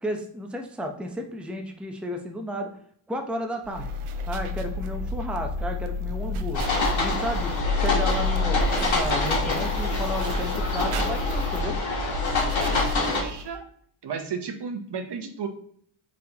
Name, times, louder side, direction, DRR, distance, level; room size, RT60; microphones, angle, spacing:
voice 1, 0.0-2.7 3.1-3.9 4.3-6.6 7.0-11.8, equal, ahead, 3 dB, 0.6 m, -33 dB
sound 1, 3.6-13.6, left 2 dB, 90° right, 0.6 m, -29 dB
sound 2, 6.5-13.2, left 3 dB, 70° left, 1.6 m, -27 dB
voice 2, 13.1-13.7 14.0-15.5, right 6 dB, 55° right, 5 dB, 0.8 m, -33 dB
4.4 x 3.5 x 2.8 m, 0.62 s
cardioid pair, 60°, 49 cm